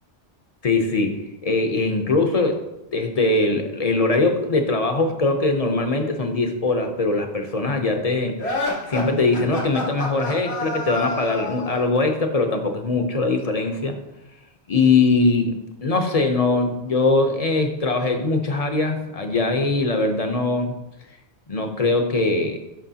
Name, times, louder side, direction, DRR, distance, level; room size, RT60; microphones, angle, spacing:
voice 1, 0.6-1.1 1.4-2.6 2.9-14.0 14.7-20.7 21.5-22.6, left 3 dB, 40° left, 5 dB, 0.7 m, -21 dB
sound 1, 8.4-11.9, left 2 dB, 85° left, 1.8 m, -28 dB
11.5 x 4.5 x 2.8 m, 0.93 s
omnidirectional pair, 1.1 m